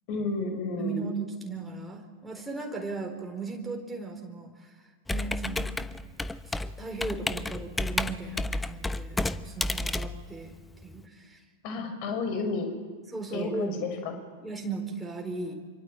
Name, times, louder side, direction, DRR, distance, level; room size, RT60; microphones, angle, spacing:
voice 1, 0.1-1.1 11.6-12.7 13.3-14.2, left 3 dB, 45° left, 6 dB, 5.9 m, -31 dB
voice 2, 0.8-4.8 5.1-5.7 6.6-10.5 10.8-11.4 13.1-13.8 14.4-15.5, right 3 dB, 5° right, 0 dB, 4.2 m, -36 dB
Computer keyboard, 5.1-11.0, left 2 dB, 10° left, 0.9 m, -31 dB
27.0 x 25.0 x 8.8 m, 1.5 s
figure-of-eight pair, 90°, 0 cm